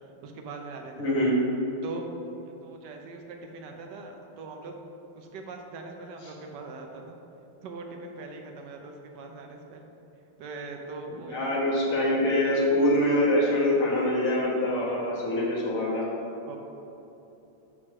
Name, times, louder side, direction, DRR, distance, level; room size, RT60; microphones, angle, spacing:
voice 1, 0.2-0.9 1.2-1.3 1.8-2.1 2.5-4.7 5.1-7.2 7.6-9.9 10.4-11.7 16.5-16.6, right 3 dB, 70° right, 2 dB, 1.1 m, -41 dB
voice 2, 1.0-1.3 11.3-16.0, left 1 dB, 45° left, -5 dB, 1.7 m, -24 dB
7.5 x 3.2 x 6.0 m, 3.0 s
omnidirectional pair, 2.3 m